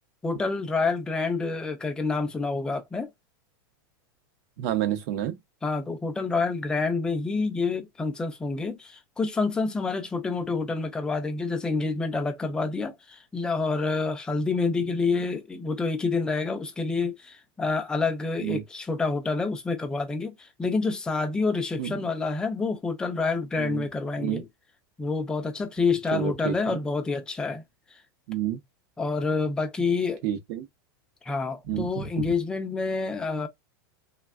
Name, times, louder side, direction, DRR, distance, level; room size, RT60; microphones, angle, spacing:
voice 1, 0.2-3.1 5.6-24.5 25.0-27.6 29.0-30.2 31.2-33.5, left 4 dB, 5° left, 0.4 m, -28 dB
voice 2, 4.6-5.4 18.4-18.6 21.8-22.0 23.6-23.8 24.2-24.4 26.1-26.8 28.3-28.6 30.2-30.7 31.7-31.9 32.2-32.3, right 11 dB, 45° right, 0.6 m, -29 dB
3.3 x 2.1 x 2.3 m
supercardioid pair, 165°, 12 cm